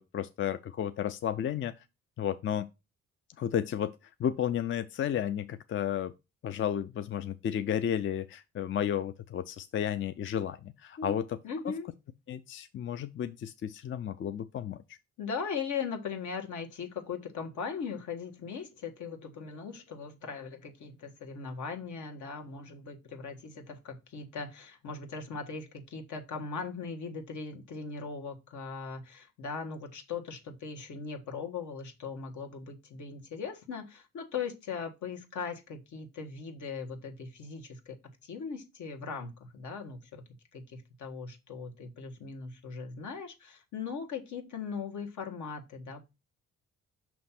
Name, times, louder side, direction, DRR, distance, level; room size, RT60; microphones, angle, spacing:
voice 1, 0.0-1.7 2.2-2.7 3.4-3.9 4.2-6.1 6.4-11.3 12.3-14.8, left 9 dB, 40° left, 0.4 m, -32 dB
voice 2, 11.0-11.9 15.2-38.0 38.2-40.2 40.5-46.1, left 5 dB, 70° left, 1.4 m, -39 dB
6.0 x 3.1 x 5.7 m
cardioid pair, 90°, 30 cm